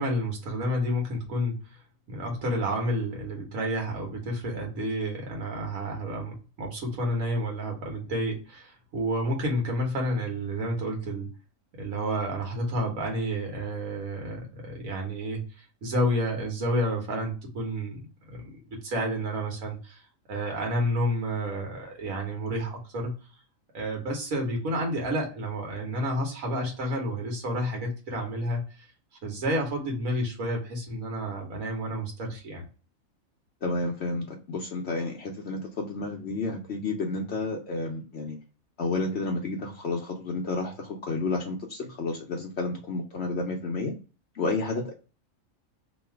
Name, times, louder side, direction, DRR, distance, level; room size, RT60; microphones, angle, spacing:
voice 1, 0.0-1.6 2.1-11.3 11.8-18.0 18.3-20.0 20.3-23.1 23.7-28.6 29.2-32.7, equal, 85° right, 1 dB, 1.6 m, -30 dB
voice 2, 33.6-38.4 38.8-43.9 44.3-44.9, left 3 dB, 60° left, 1 dB, 0.9 m, -31 dB
3.1 x 2.9 x 4.4 m, 0.34 s
omnidirectional pair, 1.4 m